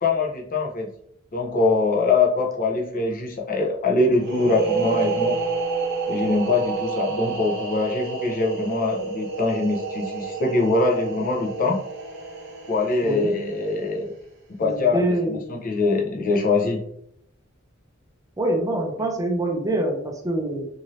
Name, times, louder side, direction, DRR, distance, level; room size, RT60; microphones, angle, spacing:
voice 1, 0.0-0.9 1.3-5.4 6.1-11.8 12.7-14.1 14.6-16.8, left 3 dB, 40° left, -1 dB, 0.6 m, -23 dB
sound 1, 4.2-13.7, right 4 dB, 55° right, 0.7 m, -29 dB
voice 2, 13.0-13.3 14.6-15.4 18.4-20.7, right 1 dB, 15° right, 1 dB, 0.5 m, -25 dB
2.6 x 2.6 x 3.0 m, 0.73 s
head